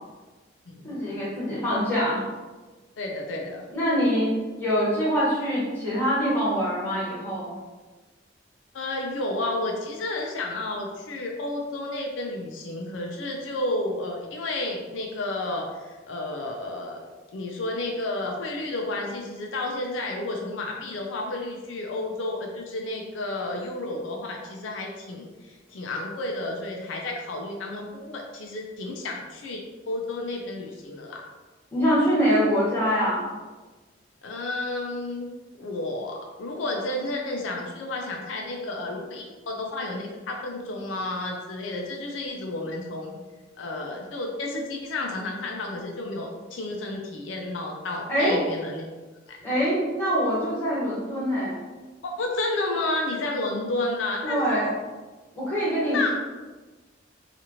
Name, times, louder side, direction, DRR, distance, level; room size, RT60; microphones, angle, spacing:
voice 1, 0.8-2.2 3.7-7.5 31.7-33.2 48.1-48.4 49.4-51.6 54.2-54.7 55.3-56.1, equal, 10° left, -9 dB, 1.1 m, -24 dB
voice 2, 3.0-3.6 8.7-15.7 16.1-17.0 17.3-29.6 29.9-31.2 34.2-35.3 35.6-43.1 43.6-48.9 49.3-49.7 52.0-54.6 55.7-56.1, left 2 dB, 85° left, 0 dB, 0.4 m, -31 dB
2.8 x 2.4 x 2.8 m, 1.3 s
head